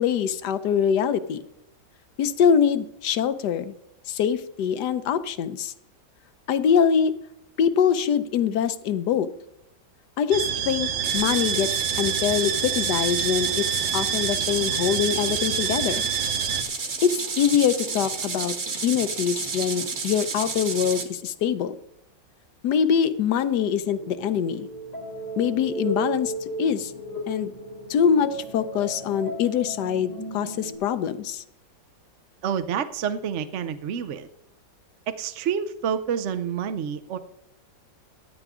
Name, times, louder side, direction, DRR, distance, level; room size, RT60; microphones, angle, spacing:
voice 1, 0.0-1.4 2.2-3.7 4.1-5.7 6.5-7.1 7.6-9.3 10.2-16.0 17.0-18.5 18.8-21.7 22.6-24.7 25.4-26.3 26.6-26.9 27.3-27.5 27.9-31.4, left 8 dB, 70° left, 13 dB, 1.3 m, -24 dB
sound 1, 10.3-16.6, right 9 dB, 90° right, 1.6 m, -27 dB
sound 2, 11.0-21.0, right 4 dB, 40° right, 1.5 m, -31 dB
sound 3, 24.0-30.7, right 1 dB, 90° left, 3.5 m, -35 dB
voice 2, 32.4-34.3 35.1-37.2, right 8 dB, 60° right, 9 dB, 0.8 m, -28 dB
16.0 x 9.5 x 3.7 m, 0.82 s
omnidirectional pair, 1.9 m